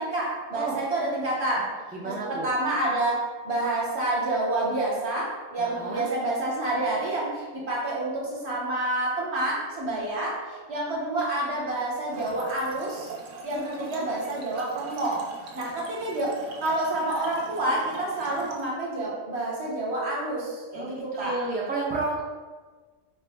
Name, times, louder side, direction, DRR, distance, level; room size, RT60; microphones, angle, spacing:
voice 1, 0.0-1.7 2.0-13.1 13.4-15.2 15.5-16.3 16.6-21.4, right 2 dB, 60° right, -4 dB, 1.1 m, -28 dB
voice 2, 1.9-2.4 5.6-6.1 20.7-22.2, right 3 dB, 15° right, -6 dB, 0.3 m, -31 dB
Trickle dribble / Fill (with liquid), 12.1-18.7, right 4 dB, 85° right, 1.0 m, -42 dB
4.2 x 2.0 x 3.4 m, 1.4 s
omnidirectional pair, 1.3 m